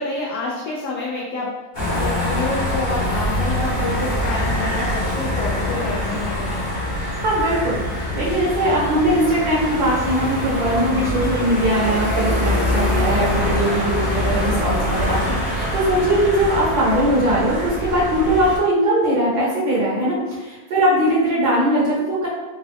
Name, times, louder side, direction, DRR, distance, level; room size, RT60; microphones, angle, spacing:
voice 1, 0.0-6.6, left 3 dB, 80° left, -4 dB, 0.9 m, -28 dB
sound 1, 1.7-18.6, left 1 dB, 40° left, 1.1 m, -24 dB
voice 2, 7.2-22.3, right 1 dB, 55° right, -6 dB, 1.4 m, -20 dB
3.8 x 2.3 x 3.3 m, 1.2 s
omnidirectional pair, 2.3 m